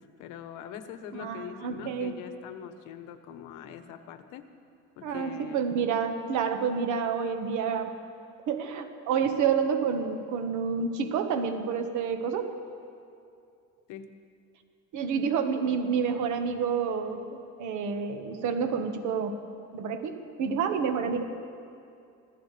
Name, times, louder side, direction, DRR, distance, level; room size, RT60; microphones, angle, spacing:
voice 1, 0.0-4.5 5.0-5.6 6.7-6.8 13.9-14.2, left 9 dB, 70° left, 9 dB, 1.2 m, -43 dB
voice 2, 1.1-2.1 5.0-7.9 8.5-12.5 14.9-19.3 19.7-21.2, right 6 dB, 65° right, 6 dB, 1.5 m, -29 dB
26.0 x 16.0 x 3.4 m, 2.5 s
cardioid pair, 150°, 32 cm